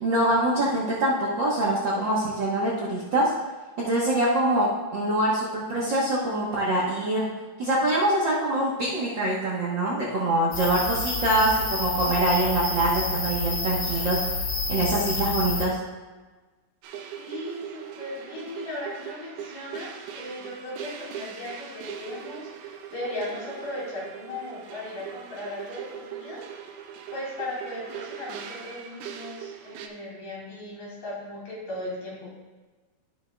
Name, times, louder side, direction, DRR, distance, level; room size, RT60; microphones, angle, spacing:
voice 1, 0.0-3.3 3.8-7.3 7.6-14.2 14.7-15.8, right 1 dB, 60° right, -6 dB, 1.2 m, -24 dB
sound 1, 10.5-15.6, left 3 dB, 55° left, 1.6 m, -29 dB
sound 2, 16.8-29.9, right 9 dB, 85° right, 2.3 m, -40 dB
voice 2, 17.2-26.8 27.1-32.3, left 1 dB, 75° left, -6 dB, 4.3 m, -37 dB
14.0 x 6.4 x 2.3 m, 1.3 s
omnidirectional pair, 3.7 m